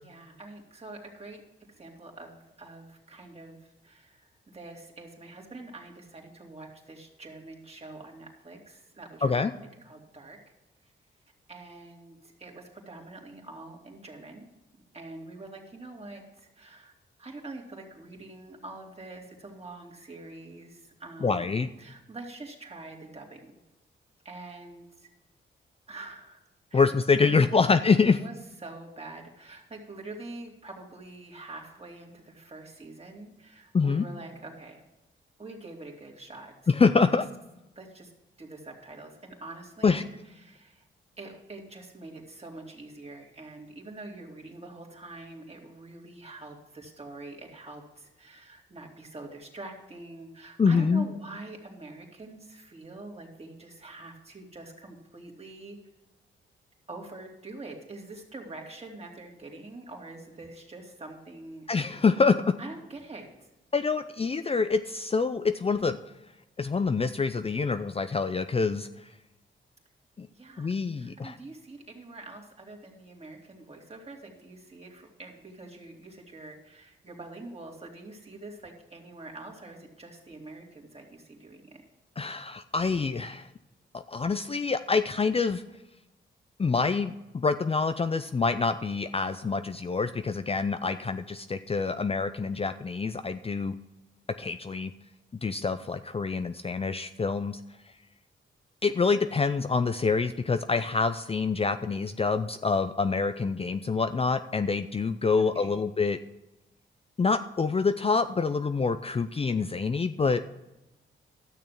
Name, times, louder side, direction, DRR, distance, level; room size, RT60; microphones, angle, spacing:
voice 1, 0.0-1.4 1.7-10.4 10.8-10.9 11.5-14.5 14.9-16.9 17.2-23.5 24.2-25.1 25.9-26.4 26.7-26.8 27.3-27.7 28.1-28.3 28.6-34.8 35.4-36.7 37.7-38.1 38.4-40.9 41.2-55.8 56.9-61.9 62.6-63.5 70.3-81.8 105.4-105.8, right 2 dB, 30° right, 0 dB, 2.7 m, -45 dB
voice 2, 21.2-21.7 26.7-28.2 33.7-34.0 36.7-37.3 39.8-40.0 50.6-51.1 61.7-62.5 63.7-66.0 66.6-68.9 70.2-70.3 70.6-71.4 82.2-83.5 83.9-85.6 86.6-93.7 94.4-94.9 95.4-97.6 98.8-106.2 107.2-110.4, left 4 dB, 30° left, 10 dB, 0.5 m, -26 dB
12.5 x 6.8 x 5.9 m, 1.0 s
cardioid pair, 70°, 21 cm